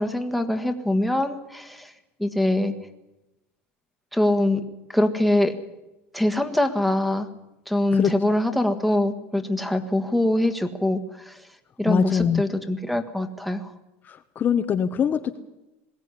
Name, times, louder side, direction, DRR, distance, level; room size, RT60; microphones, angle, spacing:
voice 1, 0.0-1.9 2.2-2.7 4.1-4.6 4.9-5.5 6.1-7.3 7.7-11.3 11.8-13.7, left 1 dB, ahead, 5 dB, 1.7 m, -23 dB
voice 2, 11.9-12.4 14.0-15.4, left 7 dB, 30° left, 7 dB, 1.1 m, -23 dB
21.0 x 16.5 x 9.8 m, 0.97 s
supercardioid pair, 140°, 6 cm